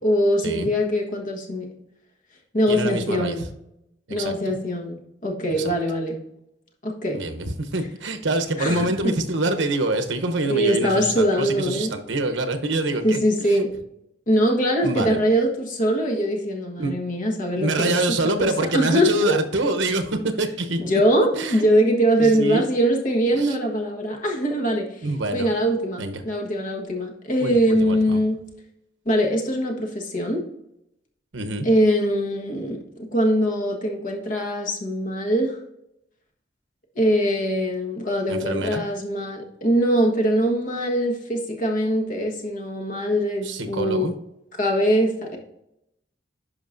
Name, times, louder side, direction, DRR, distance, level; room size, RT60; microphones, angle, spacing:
voice 1, 0.0-1.7 2.5-3.5 4.1-6.2 6.8-7.2 8.6-9.1 10.5-11.9 13.0-13.7 14.3-19.4 20.8-25.1 25.3-28.4 29.0-30.4 31.6-32.8 33.1-35.6 36.9-44.1 44.6-45.4, equal, 45° left, 1 dB, 1.4 m, -22 dB
voice 2, 2.7-3.3 4.2-4.3 5.6-5.7 7.1-13.2 13.5-13.6 14.8-15.2 16.8-16.9 17.6-20.8 21.4-21.7 22.2-22.7 23.3-23.6 25.0-25.5 26.0-26.2 27.4-28.2 31.3-31.7 38.3-38.8 43.4-44.2, right 2 dB, 80° right, 7 dB, 0.9 m, -25 dB
11.0 x 5.1 x 2.6 m, 0.83 s
head